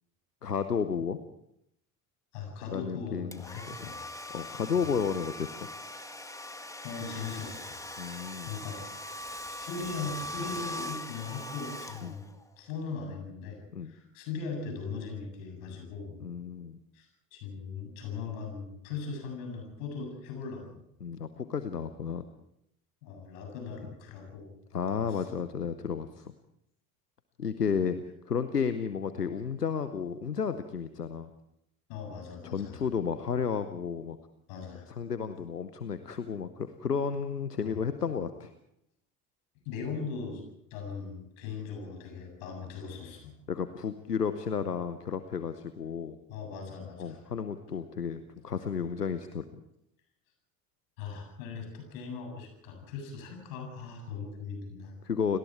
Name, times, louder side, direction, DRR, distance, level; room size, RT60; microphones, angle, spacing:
voice 1, 0.4-1.2 2.7-3.4 3.7-3.9 4.3-5.7 8.0-8.5 12.0-12.2 13.7-13.9 16.2-16.8 21.0-22.2 24.7-26.3 27.4-31.3 32.4-34.2 34.9-38.5 43.5-46.2 47.0-49.4 55.0-55.4, left 6 dB, 90° left, 11 dB, 0.9 m, -32 dB
voice 2, 2.3-4.0 6.8-7.8 8.3-9.0 9.5-12.3 12.6-16.2 16.9-20.8 23.0-24.5 24.9-25.4 31.9-32.8 34.5-34.9 37.6-37.8 39.6-40.4 40.7-43.4 46.3-47.2 51.0-54.9, left 5 dB, 65° left, 3 dB, 7.7 m, -39 dB
Domestic sounds home sounds, 3.3-12.5, left 1 dB, 5° left, 2.0 m, -41 dB
29.0 x 19.5 x 4.7 m, 0.78 s
figure-of-eight pair, 50°, 46 cm